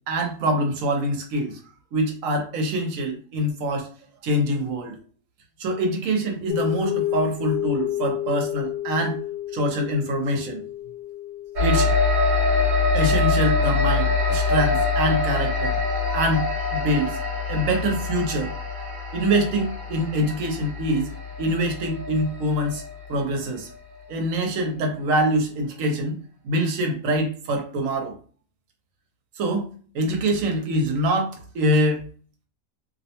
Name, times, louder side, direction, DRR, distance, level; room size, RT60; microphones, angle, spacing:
voice 1, 0.1-1.6 1.9-3.9 4.2-5.0 5.6-9.2 9.5-10.6 11.6-11.9 12.9-15.8 16.1-16.4 16.7-17.2 17.5-18.5 19.1-21.1 21.4-22.8 23.1-23.7 24.1-26.2 26.4-28.1 29.4-32.1, right 1 dB, 85° right, 3 dB, 1.1 m, -24 dB
sound 1, 6.5-15.4, left 13 dB, 80° left, 1.0 m, -32 dB
sound 2, 11.6-23.4, left 4 dB, 45° right, 0.7 m, -24 dB
2.6 x 2.1 x 2.8 m, 0.41 s
omnidirectional pair, 1.4 m